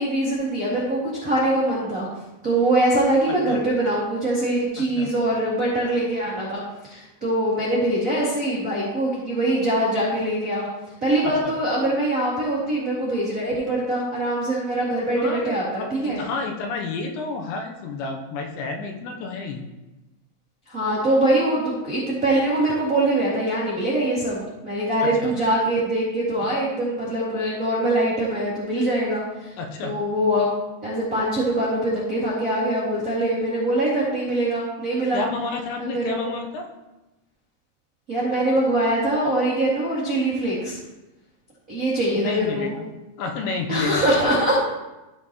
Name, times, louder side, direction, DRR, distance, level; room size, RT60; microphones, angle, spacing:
voice 1, 0.0-2.1 2.4-6.6 6.9-10.7 11.0-16.2 20.7-29.5 29.8-30.5 30.8-35.2 35.8-36.3 38.1-40.8 41.7-42.7 43.7-44.6, right 1 dB, 45° right, -8 dB, 1.0 m, -23 dB
voice 2, 11.2-11.5 15.2-19.6 25.0-25.3 29.6-29.9 35.1-36.6 42.2-42.9 43.2-44.3, left 4 dB, 80° left, 2 dB, 3.0 m, -30 dB
14.5 x 5.6 x 3.0 m, 1.0 s
omnidirectional pair, 5.3 m